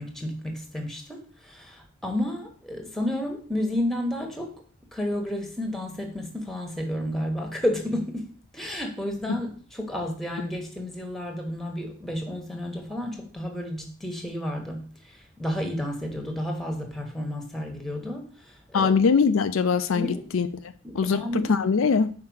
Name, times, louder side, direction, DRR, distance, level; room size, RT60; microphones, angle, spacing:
voice 1, 0.0-4.6 4.9-8.3 8.5-19.0 19.9-20.2 20.8-21.5, left 1 dB, ahead, 1.2 m, -31 dB
voice 2, 18.7-20.5 20.9-22.1, left 5 dB, 75° left, 0.4 m, -22 dB
5.8 x 4.4 x 6.3 m
head